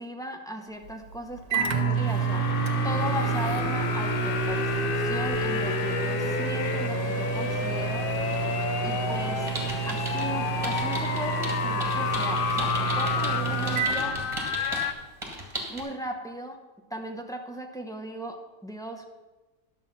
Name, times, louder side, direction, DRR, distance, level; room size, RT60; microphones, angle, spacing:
voice 1, 0.0-8.1 8.8-9.5 9.9-14.2 15.7-16.6 16.9-19.1, equal, 5° left, 2 dB, 0.7 m, -37 dB
Microwave oven, 0.8-14.8, right 7 dB, 85° right, 1.4 m, -30 dB
sound 1, 1.5-14.9, left 7 dB, 70° left, 0.5 m, -30 dB
sound 2, 9.5-10.3 10.6-14.9 15.2-15.8, right 1 dB, 20° right, 1.9 m, -36 dB
10.5 x 7.0 x 5.6 m, 1.1 s
omnidirectional pair, 1.5 m